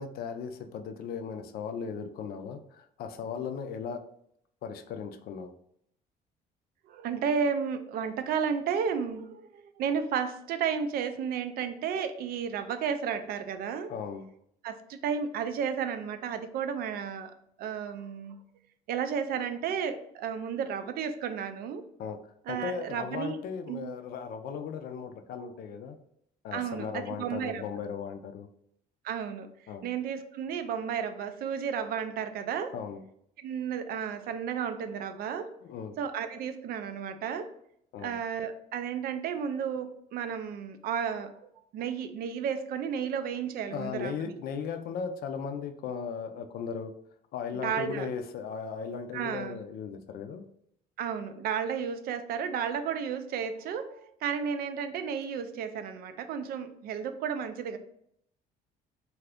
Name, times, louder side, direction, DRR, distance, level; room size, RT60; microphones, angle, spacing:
voice 1, 0.0-4.0 4.6-5.5 13.9-14.2 22.0-22.2 22.5-26.0 26.4-28.5 29.7-29.9 32.7-33.0 35.6-35.9 37.9-38.2 43.7-46.9 47.3-50.4, left 6 dB, 65° left, 7 dB, 0.4 m, -37 dB
voice 2, 6.9-13.9 14.6-17.3 17.6-18.4 18.9-21.8 22.5-23.4 23.7-23.9 26.5-27.6 29.0-29.5 29.8-32.7 33.4-35.6 36.0-37.5 38.0-41.3 41.7-44.3 47.6-48.1 49.1-49.6 51.0-57.8, right 7 dB, 65° right, 9 dB, 0.4 m, -33 dB
2.7 x 2.5 x 3.3 m, 0.71 s
cardioid pair, 110°, 17 cm